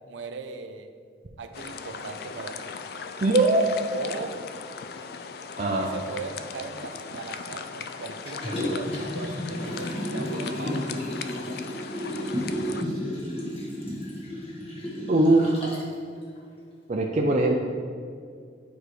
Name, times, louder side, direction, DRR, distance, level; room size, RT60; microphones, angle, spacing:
voice 1, 0.1-0.9 1.4-2.7 3.9-4.4 5.8-10.9, right 4 dB, 90° right, 8 dB, 0.5 m, -39 dB
sound 1, 1.5-12.8, left 6 dB, 55° left, 0.3 m, -38 dB
voice 2, 3.2-3.6 5.6-5.9 12.7-13.0 15.1-15.8 16.9-17.6, right 2 dB, 40° right, 0 dB, 0.4 m, -22 dB
Liquid, 8.3-15.9 16.4-16.5, equal, 30° left, 1.3 m, -32 dB
8.9 x 4.7 x 3.2 m, 2.2 s
head